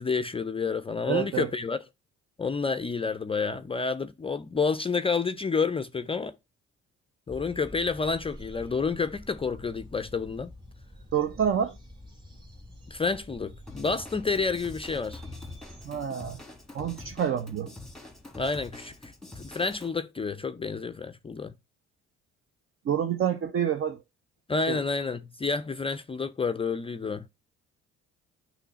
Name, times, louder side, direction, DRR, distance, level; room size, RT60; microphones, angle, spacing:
voice 1, 0.0-1.8 2.4-6.3 7.3-10.5 12.9-15.2 18.3-18.9 19.4-21.5 24.5-27.3, left 4 dB, 20° left, 0.4 m, -29 dB
voice 2, 1.1-1.5 11.1-11.7 15.8-16.4 16.7-17.7 22.9-24.0 24.7-24.8, right 9 dB, 45° right, 0.6 m, -28 dB
sound 1, 7.3-15.9, left 1 dB, 15° right, 2.3 m, -47 dB
Drum kit / Drum, 13.7-19.9, left 2 dB, ahead, 1.5 m, -45 dB
8.9 x 3.1 x 4.1 m
supercardioid pair, 80°, 29 cm